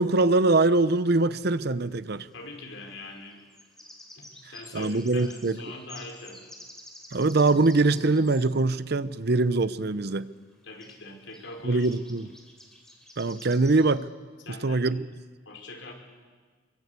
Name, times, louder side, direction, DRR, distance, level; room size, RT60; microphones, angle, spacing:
voice 1, 0.0-2.3 4.7-5.6 7.1-10.3 11.6-12.3 13.2-14.1 14.6-15.1, right 3 dB, 55° right, 15 dB, 0.8 m, -23 dB
sound 1, 1.4-1.5 3.3-8.5 10.2-10.3 10.5-10.6 10.8-11.0 11.3-11.5 11.8-14.0, equal, 5° left, 3.3 m, -49 dB
voice 2, 2.3-3.4 4.1-6.4 10.6-11.9 14.4-14.8 15.4-15.9, left 2 dB, 75° left, 2 dB, 5.1 m, -42 dB
26.0 x 23.0 x 8.3 m, 1.5 s
head